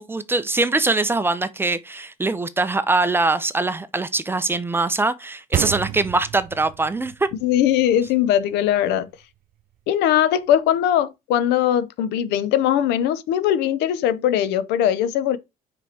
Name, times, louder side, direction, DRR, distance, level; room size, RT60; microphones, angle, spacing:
voice 1, 0.0-7.3, right 3 dB, 15° right, 0.7 m, -22 dB
sound 1, 5.5-8.9, right 13 dB, 55° right, 0.4 m, -31 dB
voice 2, 7.4-9.1 9.9-15.4, left 10 dB, 90° left, 0.7 m, -20 dB
5.0 x 4.8 x 4.4 m
cardioid pair, 110°, 17 cm